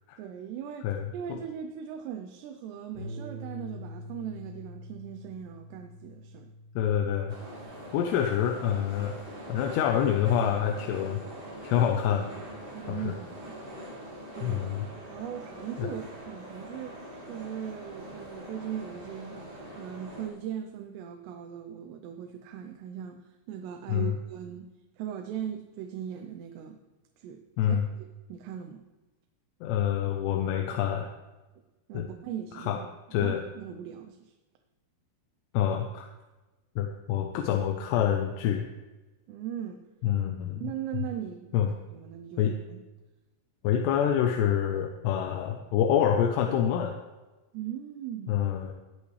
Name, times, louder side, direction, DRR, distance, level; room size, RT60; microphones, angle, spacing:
voice 1, 0.2-6.5 12.7-13.6 14.3-14.7 15.1-17.0 17.3-19.4 19.7-24.7 25.0-26.8 27.2-28.8 31.9-32.9 33.2-34.3 39.3-39.8 40.6-41.6 41.9-42.8 47.5-48.4, right 9 dB, 90° right, 5 dB, 2.9 m, -39 dB
voice 2, 0.8-1.4 6.8-7.4 7.9-9.1 9.5-11.2 11.6-12.3 12.9-13.1 14.4-14.9 15.8-15.9 23.9-24.2 27.6-27.9 29.6-31.1 31.9-32.1 32.5-32.8 33.1-33.4 35.5-36.1 36.8-38.7 40.0-40.6 41.5-41.7 42.4-42.5 43.6-46.9 48.3-48.7, left 9 dB, 90° left, 4 dB, 2.9 m, -26 dB
Bass guitar, 2.9-9.2, equal, 60° left, 4.0 m, -45 dB
sound 1, 7.3-20.3, equal, 60° right, 0.6 m, -43 dB
19.5 x 8.4 x 3.2 m, 1.1 s
omnidirectional pair, 4.7 m